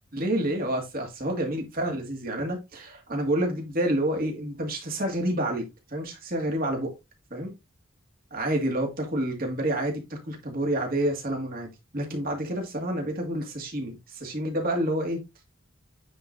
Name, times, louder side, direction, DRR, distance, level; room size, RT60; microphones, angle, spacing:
voice 1, 0.1-5.6 5.9-6.9 7.3-7.5 8.3-15.2, right 1 dB, 45° right, 2.1 m, -28 dB
9.5 x 4.0 x 2.6 m
head